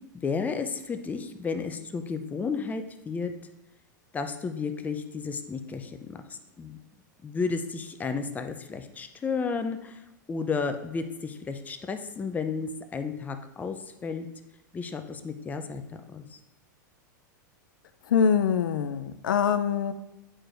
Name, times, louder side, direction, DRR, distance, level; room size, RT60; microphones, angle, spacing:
voice 1, 0.2-3.3 4.1-6.8 7.2-10.0 10.3-13.8 14.0-14.3 14.7-15.8 16.1-16.4, left 5 dB, 15° left, 8 dB, 0.5 m, -32 dB
voice 2, 18.1-19.9, left 7 dB, 85° left, 11 dB, 0.4 m, -24 dB
8.6 x 4.6 x 2.5 m, 0.96 s
hypercardioid pair, 115°, 10 cm